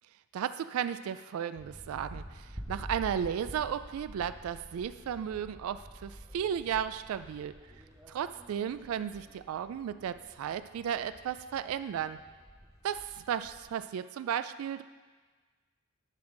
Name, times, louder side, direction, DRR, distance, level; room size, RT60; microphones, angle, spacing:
voice 1, 0.3-7.5 8.1-12.2 12.8-14.8, right 8 dB, 90° right, 15 dB, 0.3 m, -34 dB
sound 1, 1.6-13.6, equal, 15° right, 0.9 m, -48 dB
10.5 x 6.2 x 3.8 m, 1.4 s
head